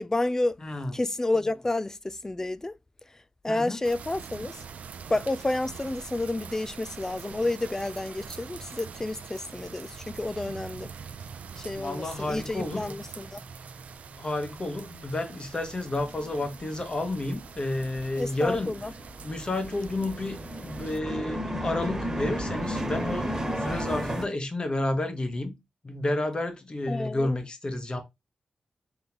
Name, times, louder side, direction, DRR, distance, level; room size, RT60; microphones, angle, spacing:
voice 1, 0.0-0.6 0.9-2.8 3.4-4.6 5.1-10.9 11.6-13.4 18.2-18.9 26.9-27.4, left 2 dB, 20° left, 0.3 m, -30 dB
voice 2, 0.6-0.9 3.5-3.8 11.7-12.9 14.2-18.7 19.2-25.6 25.8-28.0, left 2 dB, 40° left, 1.2 m, -31 dB
sound 1, 3.8-21.0, right 6 dB, 85° right, 0.4 m, -44 dB
sound 2, 11.4-11.5 11.7-12.9 13.1-24.3, equal, 20° right, 1.6 m, -35 dB
3.9 x 3.7 x 2.9 m
cardioid pair, 65°, 2 cm